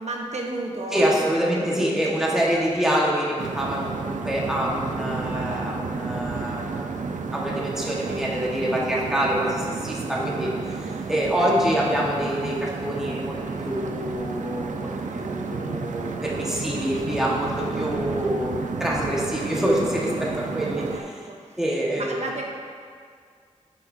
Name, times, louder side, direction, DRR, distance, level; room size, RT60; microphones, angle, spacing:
voice 1, 0.0-2.2 2.5-2.6 17.5-18.0 20.9-21.6 21.9-22.4, right 2 dB, 65° right, 0 dB, 1.0 m, -34 dB
voice 2, 0.9-6.9 7.3-21.3 21.6-22.2, equal, 5° right, -5 dB, 1.4 m, -26 dB
sound 1, 3.4-21.0, right 4 dB, 85° right, 0.5 m, -31 dB
9.9 x 5.9 x 2.7 m, 2.1 s
wide cardioid pair, 70°, 13 cm